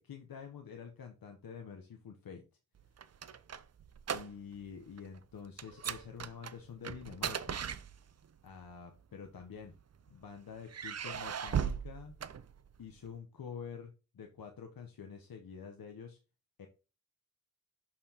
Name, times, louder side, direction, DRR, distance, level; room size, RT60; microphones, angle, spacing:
voice 1, 0.0-2.4 4.1-7.6 8.4-9.7 10.1-12.1 12.8-16.2 16.6-16.7, left 6 dB, 85° left, 4 dB, 0.8 m, -47 dB
sound 1, 2.8-4.7 4.9-5.2 5.6-8.4 9.2-10.1 10.7-13.0, right 8 dB, 50° right, 0.5 m, -38 dB
6.6 x 5.7 x 2.8 m, 0.31 s
wide cardioid pair, 70°, 34 cm